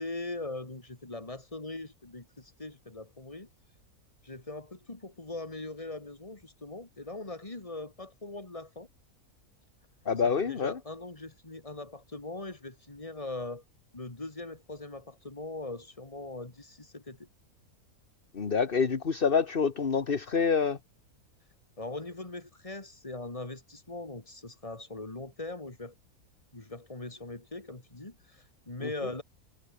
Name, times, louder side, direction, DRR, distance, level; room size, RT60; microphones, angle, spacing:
voice 1, 0.0-3.5 4.2-8.9 10.2-13.6 13.9-17.3 21.8-25.9 26.5-29.2, left 2 dB, 20° left, 2.6 m, -41 dB
voice 2, 10.1-10.7 18.3-20.8, left 6 dB, 40° left, 1.5 m, -27 dB
omnidirectional pair, 1.6 m